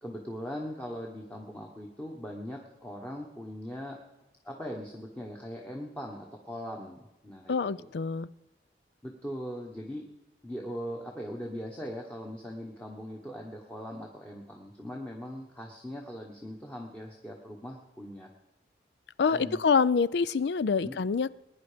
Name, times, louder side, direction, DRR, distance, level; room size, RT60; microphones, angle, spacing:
voice 1, 0.0-4.0 4.4-7.9 9.0-10.0 10.4-18.3 19.3-19.6 20.8-21.0, equal, 10° left, -1 dB, 1.3 m, -40 dB
voice 2, 7.5-8.3 19.2-21.3, left 5 dB, 75° left, 19 dB, 0.4 m, -26 dB
20.0 x 9.8 x 5.1 m, 0.99 s
head